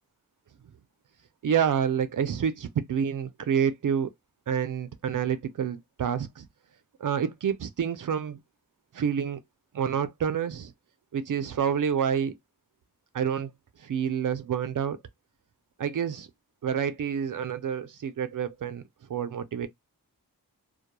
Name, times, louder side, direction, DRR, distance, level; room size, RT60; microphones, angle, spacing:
voice 1, 1.4-4.1 4.5-6.5 7.0-8.4 8.9-9.4 9.7-10.7 11.1-12.3 13.1-13.5 13.8-15.0 15.8-16.3 16.6-18.8 19.1-19.7, right 8 dB, 55° right, 0.5 m, -28 dB
2.2 x 2.2 x 2.9 m
cardioid pair, 55°, 38 cm